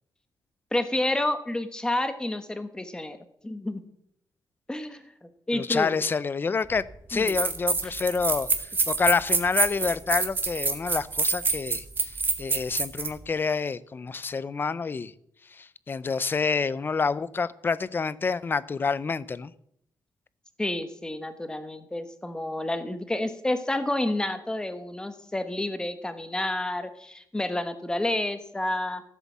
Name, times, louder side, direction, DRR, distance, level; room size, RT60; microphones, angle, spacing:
voice 1, 0.7-3.2 3.4-3.8 4.7-5.9 7.1-7.3 20.6-29.0, left 1 dB, 10° left, 10 dB, 1.1 m, -29 dB
voice 2, 5.5-15.1 15.5-19.5, left 5 dB, 25° left, 18 dB, 0.5 m, -28 dB
sound 1, 6.7-6.8 7.3-13.1, right 4 dB, 25° right, 1.5 m, -26 dB
15.0 x 8.2 x 7.3 m, 0.71 s
wide cardioid pair, 165°, 8 cm